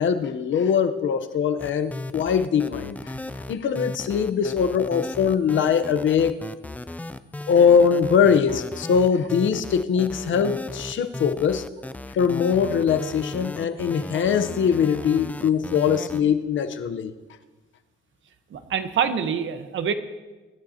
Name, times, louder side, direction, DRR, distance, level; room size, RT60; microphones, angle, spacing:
voice 1, 0.0-3.1 3.5-6.5 7.5-11.6 12.1-17.1, left 7 dB, 65° left, 9 dB, 0.9 m, -22 dB
sound 1, 1.6-16.2, left 2 dB, 5° left, 0.4 m, -36 dB
voice 2, 18.5-19.9, right 7 dB, 70° right, 8 dB, 1.1 m, -25 dB
23.5 x 11.5 x 2.9 m, 1.2 s
cardioid pair, 135°, 21 cm